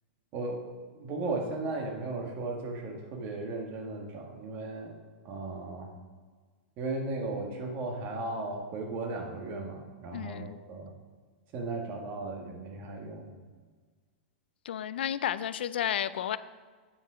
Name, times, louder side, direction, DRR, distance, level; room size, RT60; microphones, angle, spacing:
voice 1, 0.3-0.7 0.9-4.9 5.2-5.9 6.8-10.9 11.5-13.4, right 2 dB, 40° right, 2 dB, 1.5 m, -36 dB
voice 2, 10.1-10.6 14.6-16.4, left 10 dB, 80° left, 15 dB, 0.3 m, -32 dB
8.8 x 5.5 x 5.0 m, 1.5 s
hypercardioid pair, 135°, 6 cm